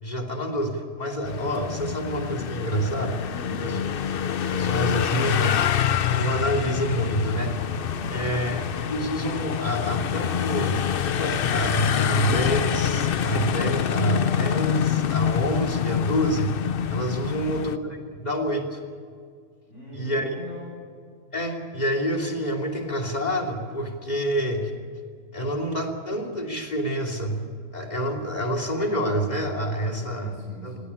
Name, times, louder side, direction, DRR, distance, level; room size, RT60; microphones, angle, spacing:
voice 1, 0.0-3.2 3.6-3.8 4.5-5.6 6.1-7.5 8.1-16.6 16.9-18.8 19.9-20.3 21.3-24.7 25.3-27.5 27.7-30.3 30.6-30.7, equal, 35° left, 1 dB, 3.1 m, -27 dB
sound 1, 1.2-17.8, left 9 dB, 55° left, 0.8 m, -26 dB
voice 2, 3.3-3.6 8.0-8.4 19.7-20.8 30.1-30.9, equal, 90° left, -7 dB, 7.5 m, -41 dB
19.0 x 17.0 x 9.9 m, 2.1 s
omnidirectional pair, 1.2 m